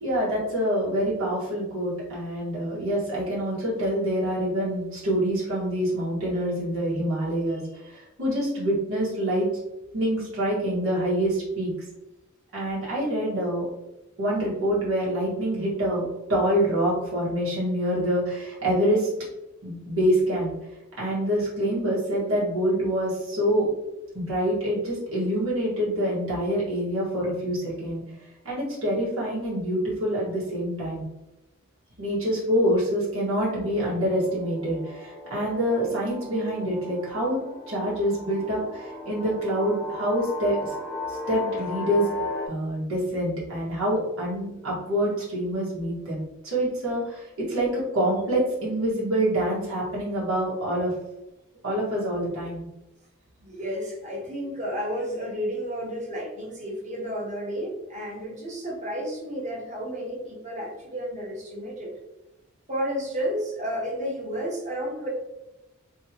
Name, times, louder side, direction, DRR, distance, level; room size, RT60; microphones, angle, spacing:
voice 1, 0.0-9.5 9.9-11.7 12.5-13.6 14.2-16.0 16.3-19.1 19.6-20.5 21.0-23.7 24.1-28.0 28.4-31.0 32.0-37.4 37.7-40.7 41.1-42.1 42.5-50.9 51.6-52.6, equal, 85° right, -7 dB, 1.4 m, -26 dB
sound 1, 33.5-42.5, left 3 dB, 5° right, 0.7 m, -37 dB
voice 2, 53.4-61.9 62.7-65.1, equal, 35° right, -4 dB, 1.1 m, -32 dB
3.1 x 2.8 x 2.8 m, 0.96 s
head